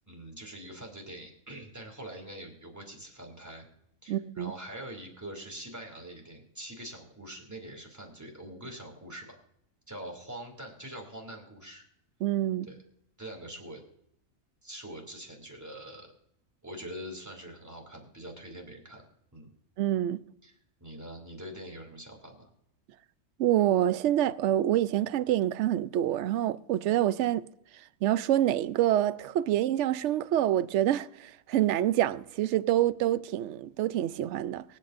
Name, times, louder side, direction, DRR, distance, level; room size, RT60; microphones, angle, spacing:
voice 1, 0.1-3.7 4.0-9.4 9.9-11.8 12.7-12.8 13.2-13.8 14.6-16.1 16.6-19.0 19.3-19.5 20.4-20.5 20.8-22.5, right 1 dB, 10° right, 2.6 m, -44 dB
voice 2, 4.1-4.5 12.2-12.7 19.8-20.2 23.4-27.5 28.0-34.6, right 12 dB, 65° right, 0.8 m, -26 dB
24.0 x 8.7 x 2.5 m
omnidirectional pair, 1.4 m